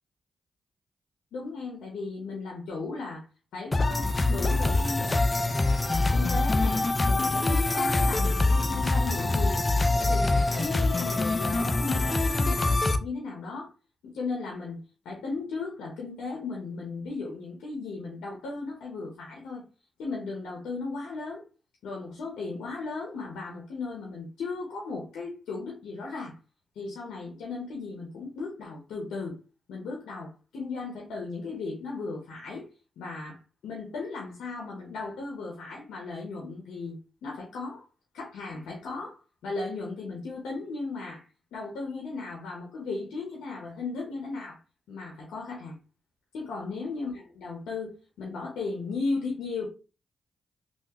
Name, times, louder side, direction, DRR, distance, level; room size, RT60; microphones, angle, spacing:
voice 1, 1.3-3.3 3.5-5.2 6.1-9.7 10.0-13.7 14.0-19.6 20.0-21.4 21.8-26.4 26.8-29.4 29.7-32.7 33.0-37.8 38.1-41.2 41.5-44.6 44.9-45.8 46.3-49.7, left 3 dB, 85° left, 0.8 m, -36 dB
sound 1, 3.7-13.0, left 2 dB, 35° left, 0.5 m, -24 dB
3.3 x 2.5 x 2.9 m
supercardioid pair, 50°, 0 cm